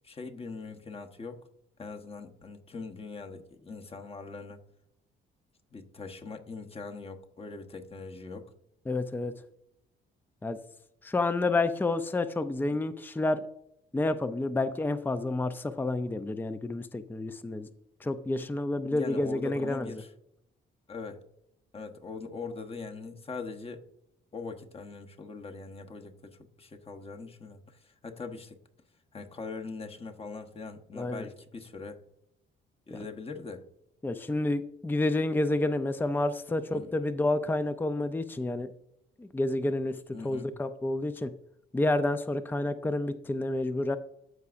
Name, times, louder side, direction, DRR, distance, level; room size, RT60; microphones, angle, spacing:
voice 1, 0.0-1.5 1.8-4.6 5.7-8.5 18.9-20.1 20.9-21.2 21.7-23.9 24.3-26.1 26.6-27.6 28.0-28.5 29.1-32.0 32.9-33.6 36.7-36.9 40.1-40.5, left 4 dB, 30° left, 4 dB, 1.1 m, -41 dB
voice 2, 8.9-9.3 10.4-10.6 11.0-13.4 13.9-17.7 18.0-19.9 30.9-31.3 32.9-33.0 34.0-38.7 39.2-40.0 40.2-41.3 41.7-44.0, left 2 dB, 10° left, 11 dB, 0.5 m, -29 dB
14.0 x 4.7 x 2.5 m, 0.78 s
cardioid pair, 90°, 20 cm